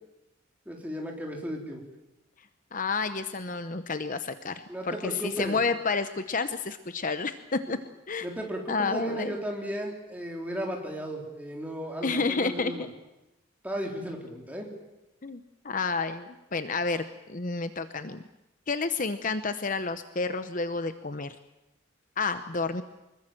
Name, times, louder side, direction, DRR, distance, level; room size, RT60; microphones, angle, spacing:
voice 1, 0.7-1.8 4.7-5.6 7.7-7.8 8.2-12.9 13.6-14.7, equal, 10° right, 0 dB, 3.9 m, -35 dB
voice 2, 2.7-7.8 8.1-8.3 8.7-9.4 12.0-12.9 15.2-18.2 18.7-21.3 22.2-22.8, left 4 dB, 40° left, 10 dB, 0.9 m, -30 dB
24.5 x 21.5 x 7.7 m, 0.94 s
head